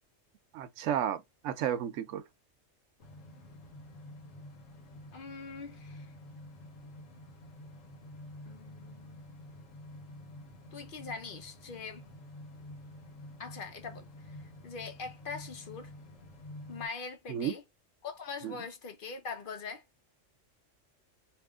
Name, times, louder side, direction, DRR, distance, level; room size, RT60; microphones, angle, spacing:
voice 1, 0.5-2.2 17.3-17.5 18.4-18.6, right 9 dB, 75° right, 0.9 m, -33 dB
sound 1, 3.0-16.9, left 1 dB, 85° left, 1.4 m, -49 dB
voice 2, 5.1-6.1 8.5-9.2 10.7-12.0 13.4-15.9 16.7-17.6 18.0-19.8, left 5 dB, 50° left, 0.8 m, -42 dB
2.9 x 2.5 x 3.5 m
omnidirectional pair, 1.3 m